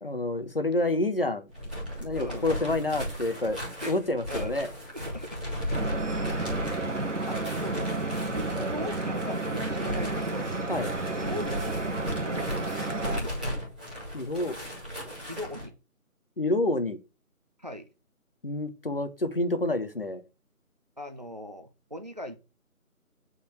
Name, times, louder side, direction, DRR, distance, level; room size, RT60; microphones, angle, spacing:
voice 1, 0.0-1.5 2.0-3.6 3.8-4.7 8.6-8.7 10.7-10.9 14.1-14.6 16.4-17.0 18.4-20.2, left 2 dB, 40° left, 1.0 m, -28 dB
sound 1, 1.5-15.7, equal, 5° right, 1.3 m, -36 dB
voice 2, 2.1-2.5 3.8-4.0 4.3-4.5 4.9-6.5 6.8-10.5 10.8-12.5 13.2-13.4 15.3-15.7 17.6-17.9 21.0-22.4, left 1 dB, 30° right, 0.8 m, -40 dB
Stream / Boat Water vehicle, 5.7-13.2, right 2 dB, 55° right, 1.8 m, -31 dB
8.8 x 4.2 x 6.4 m
figure-of-eight pair, 165°, 43 cm